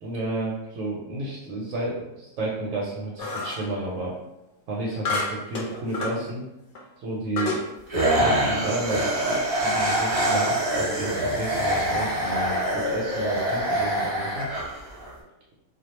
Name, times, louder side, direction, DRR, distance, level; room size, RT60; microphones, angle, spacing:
voice 1, 0.0-4.2 4.7-6.4 7.0-7.6 8.1-14.5, right 2 dB, 75° right, -4 dB, 0.9 m, -32 dB
sound 1, 3.2-3.7 5.1-6.2 6.7-6.8 7.4-7.7, left 3 dB, 65° left, 0.5 m, -29 dB
sound 2, 7.9-15.1, right 1 dB, 50° right, 0.4 m, -25 dB
2.3 x 2.1 x 2.9 m, 0.90 s
omnidirectional pair, 1.4 m